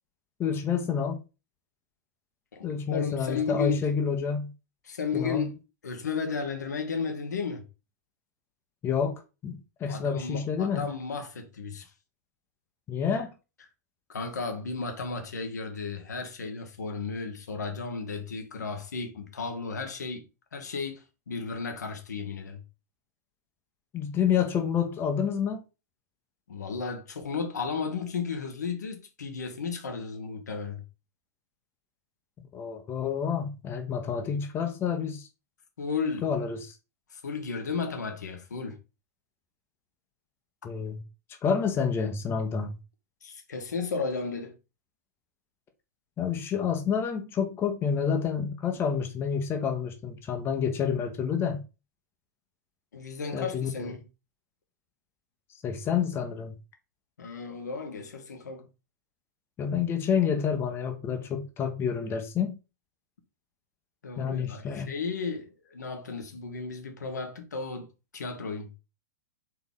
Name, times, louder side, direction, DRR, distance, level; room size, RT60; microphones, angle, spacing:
voice 1, 0.4-1.2 2.6-4.5 5.1-5.5 8.8-10.9 12.9-13.3 23.9-25.6 32.5-35.3 36.2-36.7 40.6-41.0 41.4-42.8 46.2-51.6 53.3-53.9 55.6-56.5 59.6-62.5 64.2-64.9, left 7 dB, 25° left, 0.9 m, -28 dB
voice 2, 2.5-3.9 4.8-7.6 9.9-11.9 14.1-20.2 20.5-22.6 26.5-30.8 35.8-36.3 37.1-38.8 43.2-44.6 52.9-54.0 57.2-58.7 64.0-67.9 68.1-68.7, left 5 dB, 75° left, 1.1 m, -34 dB
4.4 x 3.3 x 3.6 m
figure-of-eight pair, 105°, 9 cm